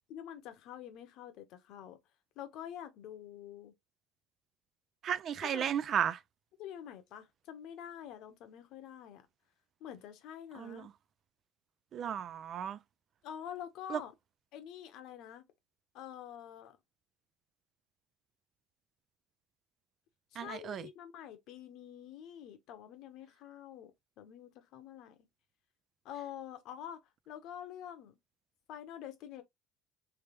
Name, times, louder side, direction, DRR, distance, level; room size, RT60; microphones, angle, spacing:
voice 1, 0.1-2.0 2.4-3.7 5.4-5.7 6.6-9.3 9.8-10.9 13.2-14.1 14.5-15.5 15.9-16.8 20.3-23.9 24.2-25.2 26.0-27.0 27.3-28.2 28.7-29.4, left 10 dB, 60° left, 0.9 m, -47 dB
voice 2, 5.0-6.2 10.6-10.8 11.9-12.8 13.9-14.0 20.4-20.9, right 9 dB, 40° right, 0.3 m, -34 dB
3.3 x 3.2 x 2.9 m
cardioid pair, 130°, 0 cm